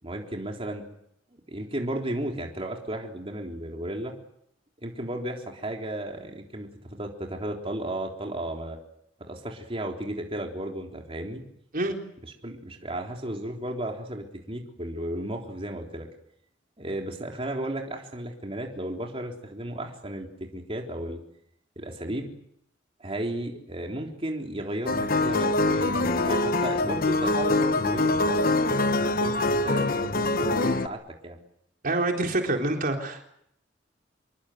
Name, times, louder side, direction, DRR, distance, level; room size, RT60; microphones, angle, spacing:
voice 1, 0.0-0.9 1.3-4.1 4.8-8.8 9.2-11.4 12.4-16.1 16.8-20.3 20.5-21.2 21.8-22.3 23.0-28.5 29.0-31.4, right 1 dB, 30° right, 1 dB, 3.8 m, -34 dB
sound 1, 24.9-30.9, left 2 dB, 50° left, 1.3 m, -24 dB
voice 2, 31.8-33.3, right 2 dB, 50° right, 2 dB, 4.0 m, -26 dB
27.0 x 24.0 x 7.9 m, 0.72 s
head